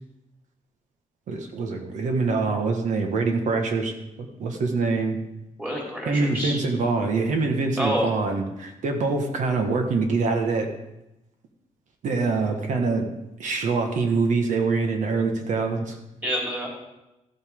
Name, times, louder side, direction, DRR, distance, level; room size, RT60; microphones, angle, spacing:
voice 1, 1.3-5.2 6.1-10.7 12.0-13.0 13.4-16.0, right 4 dB, 80° right, 4 dB, 1.5 m, -24 dB
voice 2, 5.6-6.6 7.8-8.1 16.2-16.7, equal, 15° right, -3 dB, 3.7 m, -27 dB
14.0 x 8.1 x 3.7 m, 0.91 s
wide cardioid pair, 145°, 13 cm